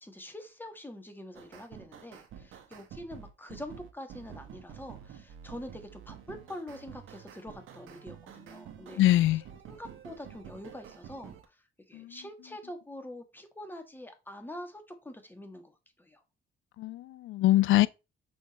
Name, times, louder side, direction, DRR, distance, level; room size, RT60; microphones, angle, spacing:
voice 1, 0.0-9.0 9.7-11.6 11.9-16.2, left 1 dB, 10° left, 1.6 m, -45 dB
sound 1, 1.3-11.4, right 9 dB, 80° right, 1.2 m, -49 dB
voice 2, 9.0-9.4 11.9-12.2 16.8-17.9, left 15 dB, 80° left, 0.5 m, -23 dB
6.4 x 3.5 x 4.2 m
cardioid pair, 90°, 20 cm